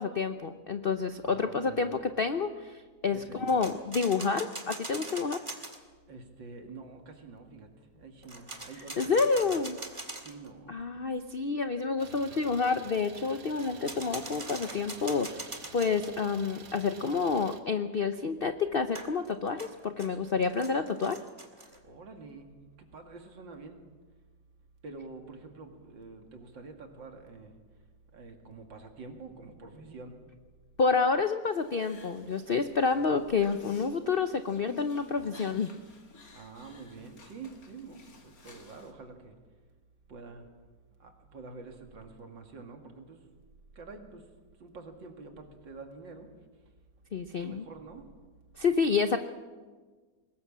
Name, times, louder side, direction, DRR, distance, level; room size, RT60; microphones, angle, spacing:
voice 1, 0.0-5.4 9.0-9.8 10.7-21.2 30.8-35.7 47.1-47.6 48.6-49.2, left 5 dB, 65° left, 9 dB, 0.5 m, -29 dB
voice 2, 1.2-2.0 3.1-3.6 6.1-9.6 10.2-10.7 20.1-20.2 21.8-22.5 22.8-23.8 24.8-27.5 28.1-30.2 32.7-33.1 36.3-39.3 40.1-40.4 41.0-43.2 43.8-44.2 44.6-46.3 47.4-48.0, right 4 dB, 75° right, 4 dB, 2.9 m, -47 dB
sound 1, 3.5-5.8 8.2-10.5 13.6-16.1 18.9-21.8, right 2 dB, 15° right, 1.9 m, -42 dB
Idling, 12.0-17.6, right 6 dB, 55° right, 1.6 m, -50 dB
sound 2, 31.5-38.9, left 3 dB, 50° left, 2.5 m, -53 dB
21.5 x 19.0 x 7.4 m, 1.4 s
omnidirectional pair, 2.0 m